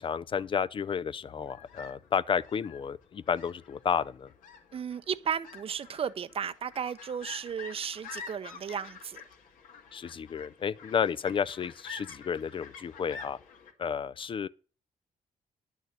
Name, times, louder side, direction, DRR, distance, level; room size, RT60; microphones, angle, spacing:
voice 1, 0.0-4.3 9.9-13.4 13.8-14.5, left 7 dB, 40° left, 0.4 m, -31 dB
sound 1, 1.3-13.7, left 6 dB, 85° left, 2.1 m, -48 dB
voice 2, 4.7-9.2, right 7 dB, 45° right, 0.6 m, -34 dB
11.0 x 6.5 x 6.6 m
cardioid pair, 115°, 14 cm